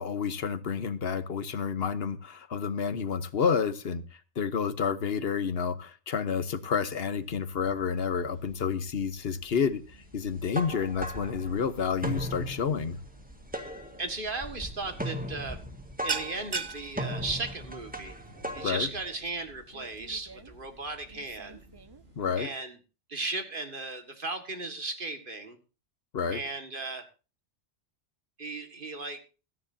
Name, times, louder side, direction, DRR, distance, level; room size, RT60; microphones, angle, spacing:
voice 1, 0.0-4.0 4.4-9.8 10.1-13.0 18.6-18.9 22.2-22.5 26.1-26.4, left 6 dB, 65° left, 13 dB, 1.2 m, -29 dB
sound 1, 7.1-22.2, right 1 dB, 65° right, 6.1 m, -54 dB
sound 2, 10.3-18.7, equal, 10° right, 1.7 m, -37 dB
voice 2, 14.0-15.6 16.0-18.2 18.5-21.6 22.4-22.8 23.1-25.6 26.3-27.1 28.4-29.2, right 3 dB, 50° right, 7 dB, 2.0 m, -36 dB
sound 3, 14.5-14.7 15.0-15.3 15.6-22.5, right 4 dB, 30° right, 0.5 m, -40 dB
17.0 x 13.5 x 2.7 m, 0.33 s
omnidirectional pair, 1.1 m